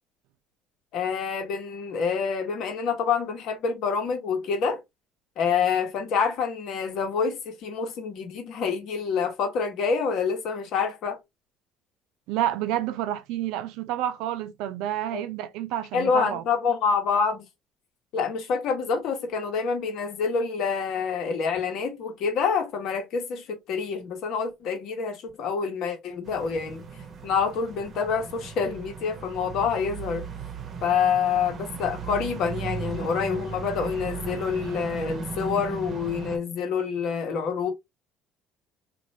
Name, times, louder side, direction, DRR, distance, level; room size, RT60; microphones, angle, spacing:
voice 1, 0.9-4.8 5.4-11.2 15.1-15.2 15.9-17.4 18.1-26.8 27.2-30.3 30.8-37.7, left 6 dB, 65° left, 1.1 m, -27 dB
voice 2, 12.3-16.4, right 12 dB, 75° right, 0.5 m, -29 dB
sound 1, 26.2-36.4, right 5 dB, 45° right, 0.8 m, -37 dB
3.0 x 2.5 x 2.8 m
hypercardioid pair, 70°, 0 cm